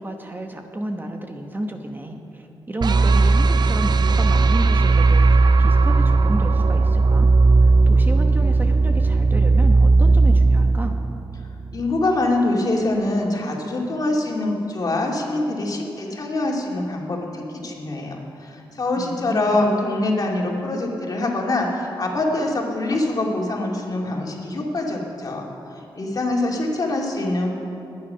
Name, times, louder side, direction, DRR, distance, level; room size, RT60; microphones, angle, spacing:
voice 1, 0.0-7.3 7.6-11.0 19.0-19.6, right 1 dB, 20° right, 4 dB, 1.0 m, -31 dB
sound 1, 2.8-11.9, right 3 dB, 55° right, 0.5 m, -16 dB
voice 2, 11.7-27.5, left 2 dB, 45° left, -1 dB, 2.5 m, -24 dB
21.0 x 9.6 x 5.7 m, 2.8 s
wide cardioid pair, 100°, 9 cm